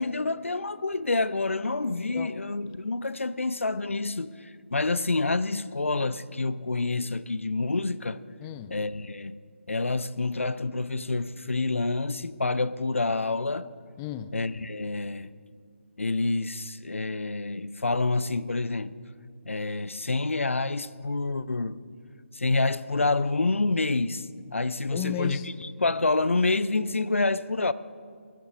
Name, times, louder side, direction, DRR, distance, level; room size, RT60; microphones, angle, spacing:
voice 1, 0.0-8.2 8.7-9.4 9.7-13.7 14.3-15.3 16.0-18.9 19.5-21.8 22.3-27.7, left 3 dB, 85° left, 0.5 m, -28 dB
voice 2, 8.4-8.7 14.0-14.4 24.9-25.7, left 12 dB, 15° left, 0.4 m, -34 dB
14.5 x 10.5 x 4.9 m
figure-of-eight pair, 150°, 7 cm